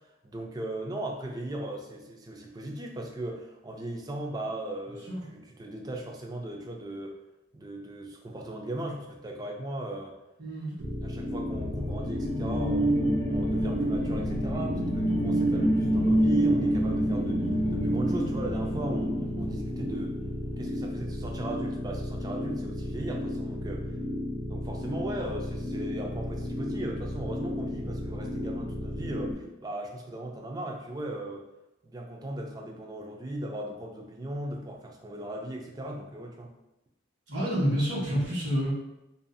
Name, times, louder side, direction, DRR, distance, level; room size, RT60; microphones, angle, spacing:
voice 1, 0.2-7.2 7.5-10.1 11.0-20.2 20.6-24.0 24.5-31.5 31.8-36.5, right 1 dB, 20° right, 1 dB, 0.3 m, -38 dB
voice 2, 10.4-10.7 37.3-38.7, equal, 65° right, -7 dB, 1.1 m, -28 dB
sound 1, 10.8-29.3, left 1 dB, 85° right, 0.6 m, -34 dB
sound 2, 11.2-20.4, right 1 dB, 75° left, 0.5 m, -27 dB
2.6 x 2.3 x 2.6 m, 0.91 s
head